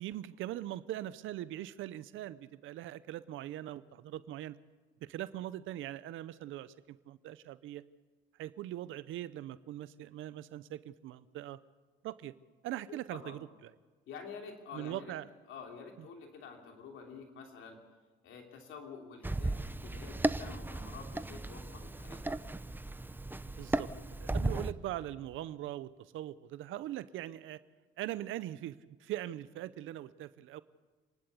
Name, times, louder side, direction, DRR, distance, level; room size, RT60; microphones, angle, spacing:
voice 1, 0.0-4.6 5.0-7.8 8.4-11.6 12.0-12.3 12.6-13.7 14.7-15.2 23.6-23.9 24.2-27.6 28.0-30.6, right 13 dB, 85° right, 15 dB, 0.7 m, -41 dB
voice 2, 12.9-13.4 14.1-15.1 15.5-17.8 18.2-19.5 19.8-22.3, left 5 dB, 80° left, 2 dB, 3.0 m, -48 dB
sound 1, 19.2-24.7, right 2 dB, 10° right, 0.7 m, -36 dB
27.5 x 11.5 x 8.3 m, 1.3 s
cardioid pair, 90°, 20 cm